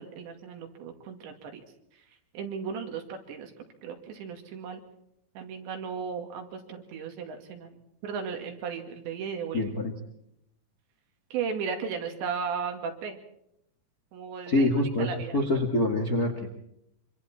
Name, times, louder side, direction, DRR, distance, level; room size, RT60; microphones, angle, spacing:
voice 1, 0.0-1.6 2.3-3.5 3.8-4.8 5.4-7.8 8.0-9.6 11.3-13.2 14.1-14.7 15.0-15.4, right 6 dB, 75° right, 4 dB, 4.5 m, -35 dB
voice 2, 9.5-9.9 14.5-16.5, left 1 dB, 40° left, 3 dB, 1.2 m, -26 dB
25.5 x 25.0 x 4.4 m, 0.77 s
omnidirectional pair, 5.2 m